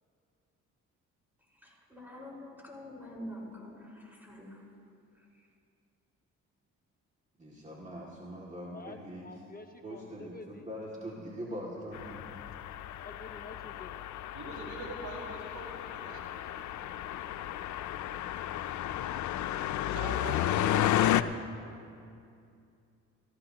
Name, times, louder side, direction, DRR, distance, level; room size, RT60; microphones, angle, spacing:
voice 1, 1.5-4.6 5.1-5.5, equal, 5° right, -3 dB, 4.9 m, -46 dB
voice 2, 7.4-9.3 9.8-12.2, equal, 25° right, -4 dB, 2.3 m, -42 dB
voice 3, 8.7-10.7 13.0-13.9, left 3 dB, 30° left, 4 dB, 0.9 m, -48 dB
sound 1, 11.9-21.2, left 12 dB, 70° left, 0.6 m, -32 dB
voice 4, 14.3-17.1 19.9-21.0, right 2 dB, 70° right, -2 dB, 4.0 m, -43 dB
28.5 x 14.5 x 2.9 m, 2.5 s
cardioid pair, 90°, 30 cm